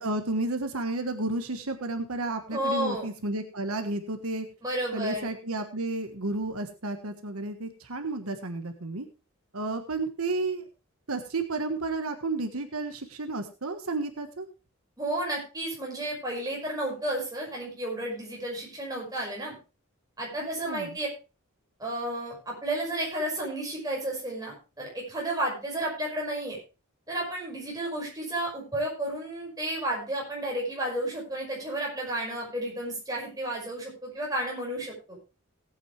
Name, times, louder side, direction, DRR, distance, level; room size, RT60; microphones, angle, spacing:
voice 1, 0.0-4.5 4.9-9.1 9.5-10.6 11.1-14.5 20.7-21.0, right 2 dB, 80° right, 7 dB, 1.4 m, -32 dB
voice 2, 2.5-3.1 4.6-5.3 15.0-19.6 20.2-21.1 21.8-26.6 27.1-35.2, right 1 dB, 15° right, -2 dB, 5.6 m, -32 dB
18.0 x 8.7 x 3.3 m, 0.30 s
head